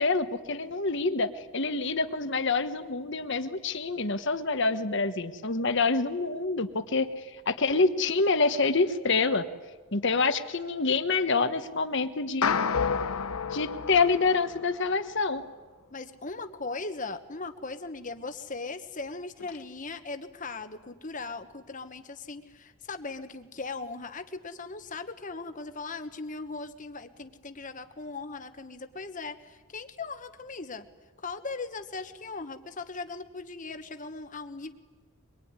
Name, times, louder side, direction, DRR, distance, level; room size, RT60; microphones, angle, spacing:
voice 1, 0.0-9.5 9.9-12.6 13.5-15.4, left 3 dB, 55° left, 10 dB, 1.3 m, -27 dB
sound 1, 12.4-14.9, left 6 dB, 85° left, 1.0 m, -29 dB
voice 2, 15.9-30.9 31.2-34.7, left 3 dB, 35° left, 8 dB, 1.4 m, -39 dB
24.0 x 23.0 x 9.8 m, 1.3 s
head